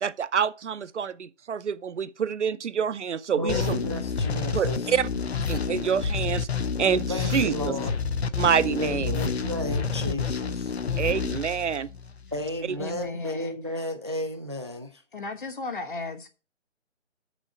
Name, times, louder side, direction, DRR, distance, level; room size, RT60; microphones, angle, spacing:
voice 1, 0.0-3.8 4.5-5.1 5.5-6.5 6.8-7.1 7.3-7.7 8.4-9.2 11.0-11.9, right 7 dB, 70° right, 0.6 m, -27 dB
voice 2, 3.4-4.9 7.1-8.0 8.8-10.7 12.3-15.0, left 1 dB, 25° right, 0.5 m, -33 dB
sound 1, 3.5-12.3, left 5 dB, 60° left, 0.7 m, -29 dB
voice 3, 12.8-13.6 15.1-16.3, left 3 dB, 45° left, 1.2 m, -35 dB
7.2 x 6.2 x 5.4 m
hypercardioid pair, 170°, 37 cm